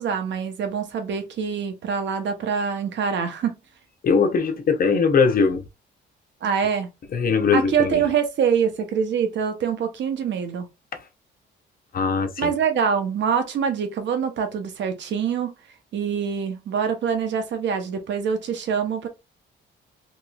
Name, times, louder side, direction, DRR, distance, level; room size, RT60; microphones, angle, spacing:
voice 1, 0.0-3.5 6.4-6.9 7.5-10.7 12.4-15.5 15.9-19.1, right 7 dB, 65° right, 0.8 m, -25 dB
voice 2, 4.0-5.6 7.1-8.0 11.9-12.5, left 5 dB, 45° left, 0.7 m, -20 dB
3.0 x 3.0 x 2.3 m
cardioid pair, 90°, 20 cm